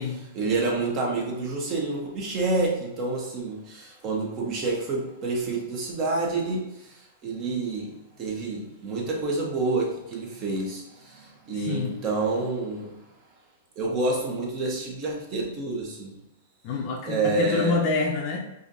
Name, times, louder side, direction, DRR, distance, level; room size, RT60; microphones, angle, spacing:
voice 1, 0.3-13.0 13.8-16.1 17.0-17.8, right 3 dB, 35° right, -1 dB, 1.1 m, -28 dB
voice 2, 11.5-11.9 16.6-18.4, left 3 dB, 45° left, 1 dB, 0.5 m, -27 dB
4.8 x 2.6 x 2.7 m, 0.91 s
hypercardioid pair, 125°, 0 cm